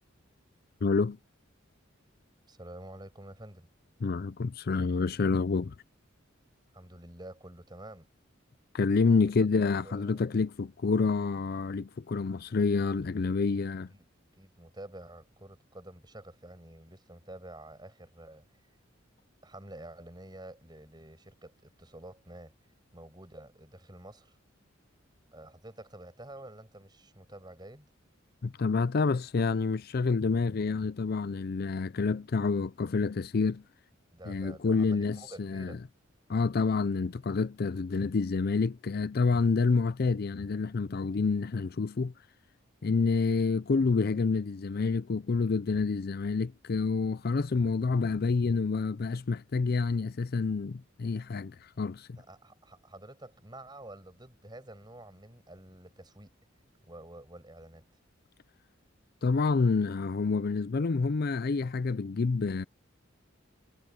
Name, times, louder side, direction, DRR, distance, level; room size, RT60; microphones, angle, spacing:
voice 1, 0.8-1.2 4.0-5.7 8.7-13.9 28.4-33.6 34.3-35.8 36.3-42.1 42.8-52.2 59.2-62.6, left 4 dB, 50° left, 0.5 m, -28 dB
voice 2, 2.5-3.7 6.7-8.1 9.1-9.2 9.8-10.5 13.4-13.6 13.9-14.0 14.4-18.6 19.4-22.5 22.9-24.4 25.3-27.9 34.1-35.8 43.3-43.4 52.2-56.3 56.8-57.8, right 1 dB, 20° right, 6.6 m, -49 dB
head